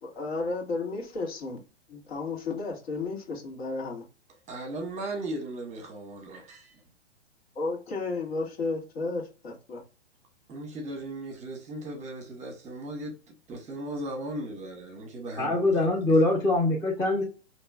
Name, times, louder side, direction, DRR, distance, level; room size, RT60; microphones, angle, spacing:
voice 1, 0.0-1.6 1.9-4.1 7.6-9.8, left 3 dB, 60° left, 1.8 m, -33 dB
voice 2, 4.5-6.8 10.5-13.2 13.5-15.6, right 1 dB, 20° right, 1.0 m, -37 dB
voice 3, 15.4-17.2, left 2 dB, 10° left, 0.7 m, -23 dB
4.3 x 3.0 x 2.3 m
hypercardioid pair, 120°, 35 cm